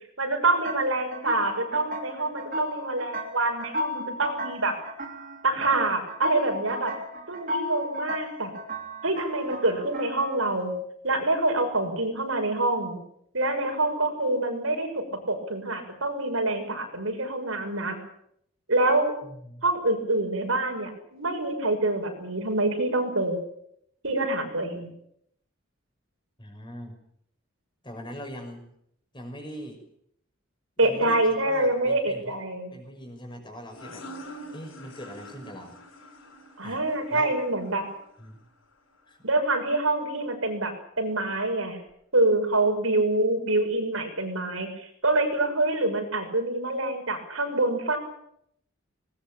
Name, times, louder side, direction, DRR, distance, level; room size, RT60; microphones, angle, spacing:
voice 1, 0.2-4.7 5.4-6.9 7.3-8.5 9.0-10.8 11.0-13.0 13.3-18.0 18.7-19.1 19.6-23.4 24.0-24.9 30.8-32.7 36.6-37.8 39.2-41.8 42.1-48.0, right 2 dB, 85° right, 3 dB, 6.4 m, -26 dB
sound 1, 0.6-10.5, left 1 dB, 40° right, 3.2 m, -35 dB
voice 2, 19.2-19.6 26.4-27.0 27.8-28.6 29.1-29.8 30.8-31.2 31.4-32.4 32.7-34.0 34.5-35.7 36.6-36.8 37.1-37.3 38.2-38.4 39.1-39.3, equal, 25° left, 3 dB, 5.9 m, -41 dB
sound 2, 33.7-39.1, equal, 80° left, 8.0 m, -46 dB
20.5 x 20.0 x 8.9 m, 0.72 s
head